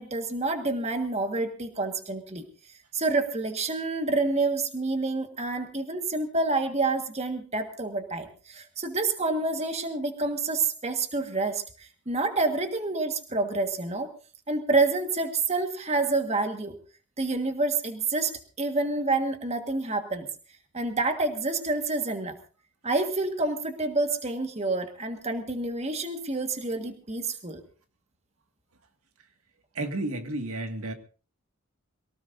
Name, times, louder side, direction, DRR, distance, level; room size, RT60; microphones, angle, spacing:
voice 1, 0.0-2.4 2.9-14.1 14.5-16.7 17.2-18.3 18.6-20.3 20.7-22.4 22.8-27.6, right 3 dB, 30° right, 6 dB, 1.6 m, -28 dB
voice 2, 29.8-30.9, right 2 dB, 90° right, 6 dB, 2.0 m, -32 dB
23.0 x 18.0 x 2.7 m, 0.36 s
head